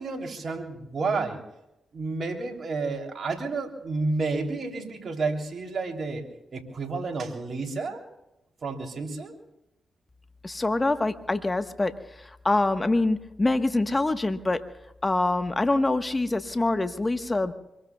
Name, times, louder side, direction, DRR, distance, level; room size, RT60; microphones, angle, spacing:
voice 1, 0.0-1.4 1.9-6.3 6.5-8.0 8.6-9.3, right 3 dB, 60° right, 3 dB, 3.4 m, -30 dB
voice 2, 10.4-14.6 15.0-17.5, left 2 dB, 30° left, 8 dB, 1.4 m, -25 dB
25.5 x 22.5 x 2.4 m, 0.91 s
supercardioid pair, 40°, 0 cm